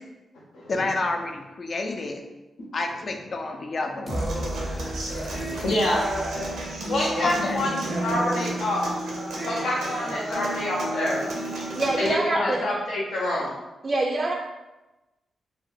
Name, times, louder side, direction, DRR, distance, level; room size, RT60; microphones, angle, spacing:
voice 1, 0.7-2.2 2.7-4.3 7.2-7.6 12.3-12.5, left 3 dB, 50° left, 4 dB, 0.4 m, -29 dB
sound 1, 4.1-8.2, equal, 10° left, 0.6 m, -36 dB
Human voice / Acoustic guitar, 4.1-12.1, right 1 dB, 90° right, 0.6 m, -31 dB
voice 2, 4.9-6.0 6.9-8.8 9.4-11.2 12.0-13.5, left 1 dB, 90° left, -4 dB, 0.8 m, -27 dB
voice 3, 11.7-12.7 13.8-14.3, right 2 dB, 40° right, 0 dB, 0.3 m, -25 dB
2.2 x 2.2 x 3.9 m, 1.1 s
cardioid pair, 55°, 0 cm